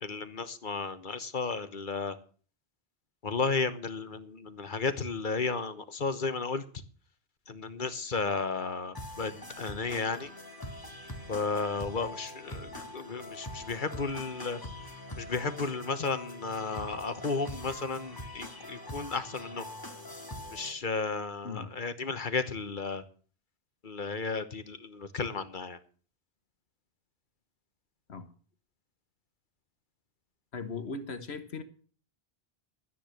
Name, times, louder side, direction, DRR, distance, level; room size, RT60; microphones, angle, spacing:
voice 1, 0.0-2.1 3.2-6.6 7.5-9.3 9.6-10.3 11.3-14.6 15.2-19.6 20.5-23.0 23.8-25.8, left 4 dB, 50° left, 11 dB, 1.2 m, -33 dB
sound 1, 8.9-20.7, left 1 dB, 20° left, 2.1 m, -43 dB
voice 2, 30.5-31.6, left 4 dB, 75° left, 10 dB, 1.5 m, -38 dB
12.0 x 9.9 x 6.4 m, 0.42 s
omnidirectional pair, 1.1 m